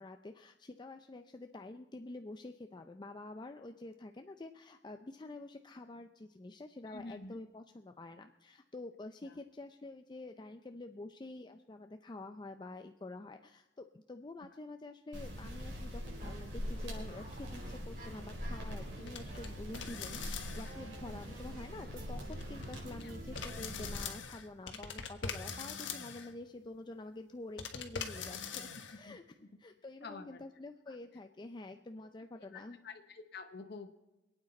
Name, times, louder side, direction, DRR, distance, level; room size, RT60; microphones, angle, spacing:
voice 1, 0.0-29.2 29.6-32.8, left 2 dB, 25° left, 6 dB, 0.5 m, -48 dB
voice 2, 6.9-7.4 9.2-9.4 23.0-23.1 29.0-29.2 30.0-30.4 30.9-31.0 32.5-33.9, left 4 dB, 60° left, 6 dB, 0.8 m, -48 dB
sound 1, 15.1-24.0, equal, 85° right, 4.9 m, -43 dB
sound 2, 16.0-23.6, right 1 dB, 50° right, 4.0 m, -54 dB
sound 3, 19.1-19.5 19.7-20.8 22.3-23.0 23.3-26.3 27.6-29.0, left 6 dB, 90° left, 1.4 m, -42 dB
26.0 x 8.9 x 4.3 m, 1.1 s
head